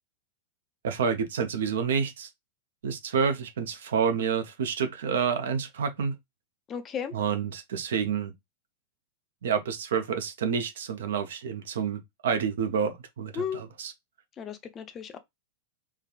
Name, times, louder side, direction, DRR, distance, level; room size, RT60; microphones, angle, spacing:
voice 1, 0.8-2.3 2.8-6.1 7.1-8.3 9.4-13.9, right 6 dB, 60° right, 0.6 m, -28 dB
voice 2, 6.7-7.1 13.3-13.6 14.4-15.2, left 7 dB, 25° left, 0.5 m, -34 dB
3.3 x 2.2 x 2.3 m
figure-of-eight pair, 90°, 0 cm